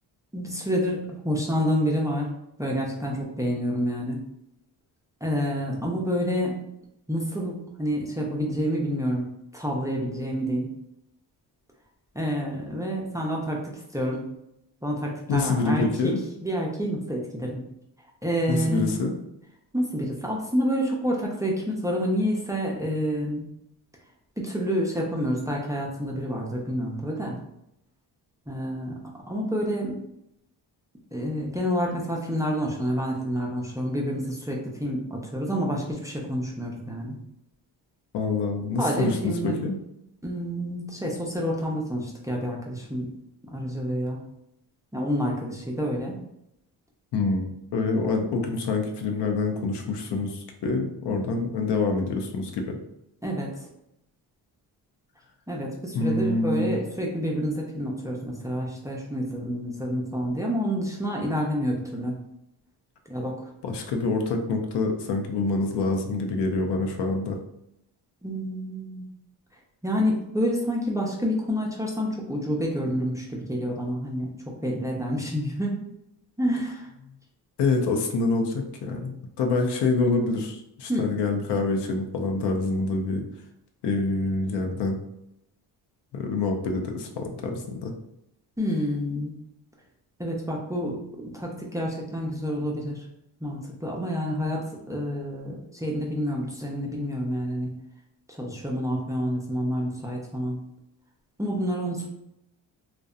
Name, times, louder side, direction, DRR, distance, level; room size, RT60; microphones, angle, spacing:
voice 1, 0.3-2.3 2.6-4.2 5.2-6.6 7.1-9.2 9.5-10.7 12.1-14.3 14.8-17.6 18.2-18.9 19.7-23.4 24.4-27.4 28.5-29.0 29.3-30.0 31.1-37.2 38.8-39.6 40.2-43.1 43.4-44.2 44.9-46.2 53.2-53.5 55.5-62.2 63.1-63.4 68.2-69.1 69.8-74.3 74.6-75.8 76.4-76.9 80.9-81.1 88.6-89.3 90.2-93.0 93.4-97.7 98.3-100.6 101.4-102.1, equal, 10° right, -2 dB, 0.5 m, -28 dB
voice 2, 15.3-16.2 18.5-19.2 38.1-39.8 47.1-52.8 55.9-56.8 63.6-67.4 77.6-83.2 83.8-85.0 86.1-87.9, left 3 dB, 65° left, 4 dB, 0.6 m, -26 dB
2.6 x 2.1 x 2.3 m, 0.80 s
cardioid pair, 75°, 43 cm